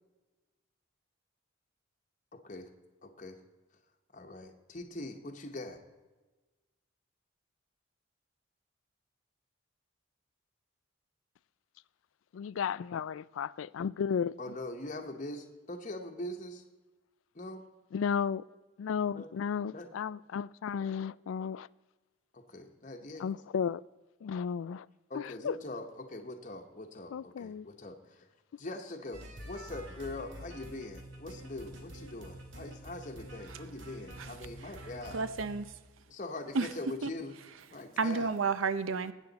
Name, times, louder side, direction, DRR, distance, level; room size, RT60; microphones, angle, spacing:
voice 1, 2.3-2.7 3.0-3.4 4.1-5.8 14.4-16.6 17.3-17.6 19.1-19.3 19.7-19.9 22.3-23.3 25.1-28.3 28.6-35.2 36.1-37.3 37.7-38.3, left 2 dB, 40° left, 1.0 m, -42 dB
voice 2, 12.3-14.4 17.9-18.4 18.8-21.7 23.2-23.8 24.2-24.9 25.1-25.5 27.1-27.7, left 7 dB, 85° left, 0.3 m, -34 dB
sound 1, 29.1-35.7, right 1 dB, 70° right, 1.9 m, -47 dB
voice 3, 35.1-35.7 36.5-36.7 37.0-37.1 38.0-39.1, right 4 dB, 90° right, 0.6 m, -30 dB
19.5 x 8.3 x 4.0 m
head